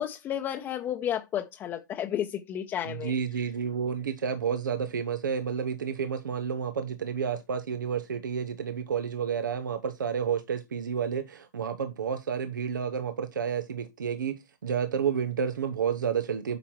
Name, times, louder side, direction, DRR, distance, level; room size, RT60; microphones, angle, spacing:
voice 1, 0.0-3.1, left 10 dB, 20° left, 0.8 m, -32 dB
voice 2, 2.8-16.6, right 7 dB, 85° right, 1.3 m, -30 dB
9.3 x 5.9 x 4.6 m
hypercardioid pair, 145°, 10 cm